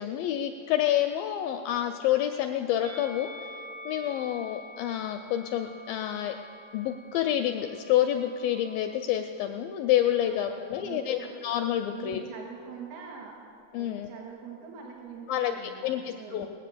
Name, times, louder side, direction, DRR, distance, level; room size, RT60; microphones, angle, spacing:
voice 1, 0.0-3.3 3.9-6.3 6.7-12.2 13.7-14.1 15.3-16.5, left 11 dB, 85° left, 5 dB, 2.0 m, -28 dB
Musical instrument, 2.8-9.2 10.1-11.1, equal, 55° right, 1.5 m, -48 dB
voice 2, 10.2-11.3 11.9-13.4 13.8-16.5, right 6 dB, 75° right, -1 dB, 3.4 m, -44 dB
19.5 x 7.9 x 6.8 m, 2.4 s
omnidirectional pair, 4.5 m